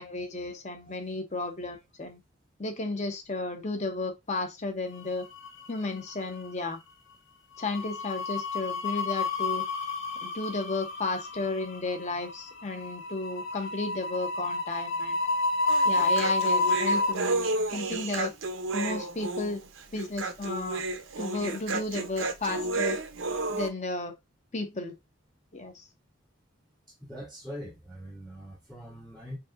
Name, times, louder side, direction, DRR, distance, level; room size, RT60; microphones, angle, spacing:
voice 1, 0.0-2.2 2.6-5.3 5.7-6.8 7.6-9.7 10.2-15.3 15.8-17.4 17.7-18.3 18.7-19.6 19.9-20.8 21.2-23.0 23.5-24.1 24.5-25.0 25.5-25.8, left 3 dB, 35° left, 0.8 m, -33 dB
sound 1, 5.1-5.9 6.1-6.4 7.6-17.1, left 2 dB, 65° left, 0.9 m, -30 dB
Human voice, 15.7-23.7, right 3 dB, 75° right, 0.7 m, -32 dB
voice 2, 26.9-29.4, equal, ahead, 0.8 m, -42 dB
5.2 x 2.7 x 2.5 m
head